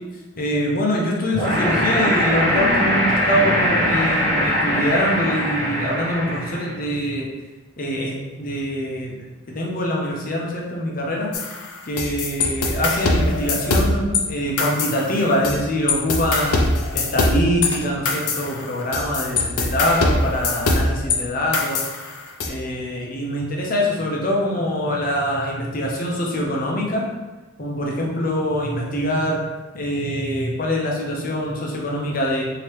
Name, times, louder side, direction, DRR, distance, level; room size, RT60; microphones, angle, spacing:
voice 1, 0.4-7.3 7.8-9.2 9.5-11.3 11.9-16.6 16.9-21.8 22.5-27.1 27.6-29.4 29.7-32.4, equal, 40° left, -2 dB, 0.6 m, -24 dB
sound 1, 1.3-6.8, equal, 45° right, 1.0 m, -21 dB
sound 2, 11.3-14.2 14.6-15.6 15.9-21.2 21.5-22.5, left 2 dB, 85° left, 0.5 m, -22 dB
3.2 x 2.8 x 3.2 m, 1.2 s
head